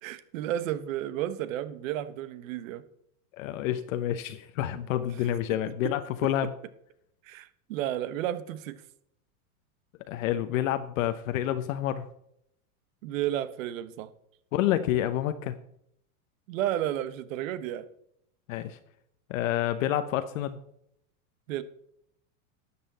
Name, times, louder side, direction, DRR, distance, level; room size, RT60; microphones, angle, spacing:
voice 1, 0.0-2.8 5.2-5.3 5.8-5.9 6.4-6.5 7.2-8.8 13.0-14.1 16.5-17.9 21.5-21.6, right 12 dB, 65° right, 14 dB, 1.1 m, -32 dB
voice 2, 3.4-6.5 10.1-12.1 14.5-15.5 18.5-18.8 19.3-20.6, left 12 dB, 65° left, 10 dB, 0.9 m, -28 dB
12.5 x 8.6 x 4.1 m, 0.74 s
supercardioid pair, 150°, 43 cm